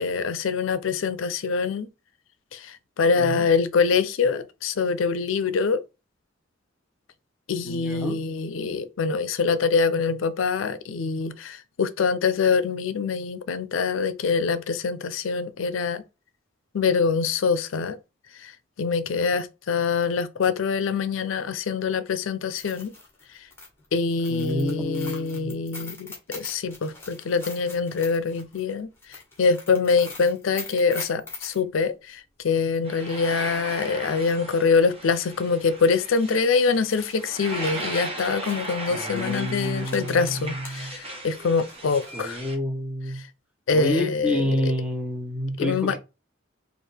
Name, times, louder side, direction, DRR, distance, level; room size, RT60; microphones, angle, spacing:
voice 1, 0.0-1.9 2.5-5.8 7.5-16.0 16.7-18.0 18.4-18.5 18.8-22.9 23.9-42.4 43.1-43.2 43.7-44.7 45.6-46.0, left 5 dB, 80° left, 0.4 m, -24 dB
voice 2, 7.6-8.2 24.3-25.5 38.9-40.9 42.1-43.2 43.7-46.0, equal, 5° right, 0.7 m, -29 dB
sound 1, 22.4-31.6 33.8-33.9 34.2-34.3 35.1-35.3 35.7-35.8 36.7-40.9 41.1-42.2, left 3 dB, 10° left, 1.3 m, -42 dB
sound 2, 32.8-42.6, right 2 dB, 30° right, 1.0 m, -37 dB
4.6 x 2.5 x 3.3 m
head